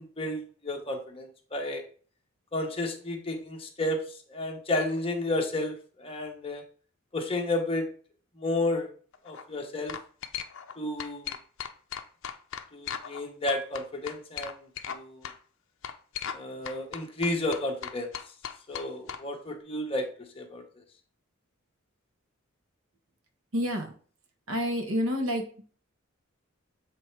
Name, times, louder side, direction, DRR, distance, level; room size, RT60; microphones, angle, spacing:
voice 1, 0.0-1.8 2.5-6.6 7.1-7.9 8.4-8.9 9.2-10.0 10.8-11.4 12.7-15.3 16.3-18.1 18.7-20.6, left 2 dB, 25° left, 2 dB, 1.1 m, -32 dB
sound 1, 9.1-9.4 9.9-10.7 11.0-13.2 13.5-15.0 15.2-15.4 15.8-16.4 16.6-19.2, left 8 dB, 65° left, 0.6 m, -37 dB
voice 2, 23.5-23.9 24.5-25.6, equal, 70° right, 3 dB, 1.5 m, -29 dB
7.8 x 3.3 x 4.6 m, 0.43 s
head